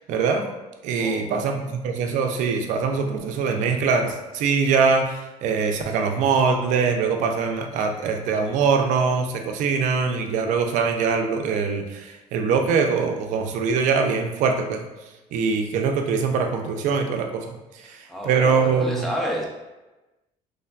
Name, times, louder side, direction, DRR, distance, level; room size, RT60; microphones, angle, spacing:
voice 1, 0.1-0.4 0.8-14.8 15.3-17.6 17.9-18.0 18.2-19.1, right 5 dB, 65° right, 4 dB, 0.4 m, -23 dB
voice 2, 1.0-1.5 17.8-19.5, equal, ahead, -2 dB, 0.4 m, -31 dB
3.1 x 2.1 x 2.3 m, 1.1 s
cardioid pair, 150°, 14 cm